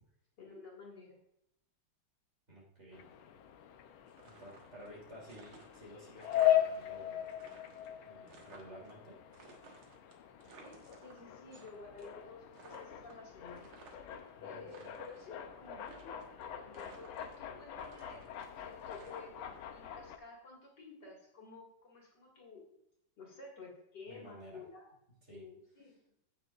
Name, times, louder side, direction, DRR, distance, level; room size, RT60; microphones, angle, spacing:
voice 1, 0.4-1.2 10.6-13.8 14.4-16.2 16.5-18.2 18.6-22.6 23.2-24.9 25.3-26.0, left 4 dB, 55° left, -3 dB, 2.7 m, -52 dB
voice 2, 2.5-3.0 4.2-7.4 8.1-9.2 14.4-14.9 18.1-18.2 24.1-24.6 25.3-25.4, equal, 30° right, -4 dB, 3.3 m, -53 dB
sound 1, 2.9-20.2, left 12 dB, 85° left, 1.6 m, -39 dB
sound 2, 4.1-4.9 5.2-6.8 7.1-8.9 9.3-11.7 12.0-12.3 12.5-14.2 14.6-15.3 15.8-16.4 16.7-17.5 17.8-19.6, right 4 dB, 90° right, 2.3 m, -57 dB
15.5 x 6.7 x 2.5 m, 0.79 s
omnidirectional pair, 2.2 m